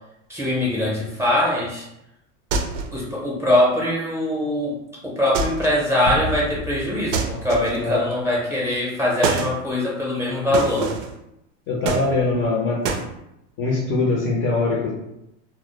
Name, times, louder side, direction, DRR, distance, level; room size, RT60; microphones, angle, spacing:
voice 1, 0.3-1.8 2.9-4.8 5.0-10.9, left 1 dB, 5° right, -6 dB, 0.6 m, -22 dB
sound 1, 2.5-3.0 5.3-5.8 7.1-7.9 9.2-9.6 10.5-11.2 11.8-12.5 12.8-13.1, right 4 dB, 85° right, 0.5 m, -26 dB
sound 2, 6.1-8.6, left 3 dB, 90° left, 0.5 m, -33 dB
voice 2, 11.7-12.8 13.6-14.9, left 3 dB, 35° left, -2 dB, 0.5 m, -22 dB
2.0 x 2.0 x 3.0 m, 0.84 s
supercardioid pair, 130°, 37 cm